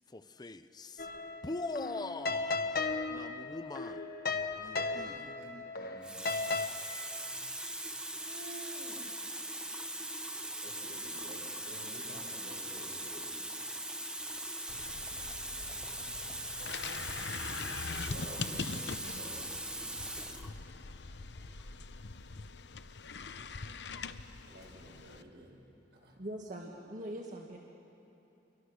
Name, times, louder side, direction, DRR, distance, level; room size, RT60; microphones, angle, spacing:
voice 1, 0.1-1.1 1.4-2.7 3.1-4.1 4.6-5.2, left 2 dB, 25° left, 12 dB, 0.6 m, -42 dB
sound 1, 1.0-6.7, left 3 dB, 55° left, 1.3 m, -36 dB
voice 2, 4.8-6.2 7.1-7.6 8.0-9.0 10.6-13.3 13.6-13.7 14.2-14.3 15.8-15.9 17.9-20.0 24.5-25.6 25.9-26.1, right 1 dB, 75° right, 0 dB, 6.2 m, -52 dB
Water tap faucet, 5.2-5.5 6.0-20.5 21.4-21.6, right 1 dB, 5° right, 1.3 m, -40 dB
sound 2, 14.7-25.2, left 4 dB, 75° left, 0.8 m, -43 dB
voice 3, 26.2-27.6, right 1 dB, 45° right, -1 dB, 1.7 m, -42 dB
28.5 x 23.5 x 6.6 m, 2.9 s
head